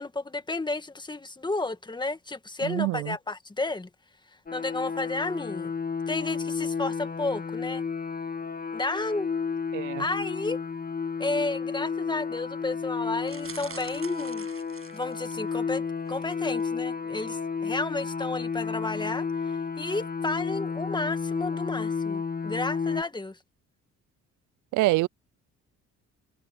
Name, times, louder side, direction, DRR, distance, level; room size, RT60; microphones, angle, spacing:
voice 1, 0.0-3.9 4.5-5.7 6.1-7.8 8.7-9.3 10.0-10.6 11.2-14.5 14.9-19.3 19.8-23.4, left 2 dB, 15° left, 1.7 m, -32 dB
voice 2, 2.6-3.2 9.7-10.1 24.7-25.1, right 20 dB, 85° right, 0.5 m, -26 dB
sound 1, 4.5-23.0, left 5 dB, 30° left, 2.8 m, -32 dB
sound 2, 13.3-15.5 16.1-16.3 16.6-16.7, right 6 dB, 45° right, 7.9 m, -45 dB
cardioid pair, 90°, 30 cm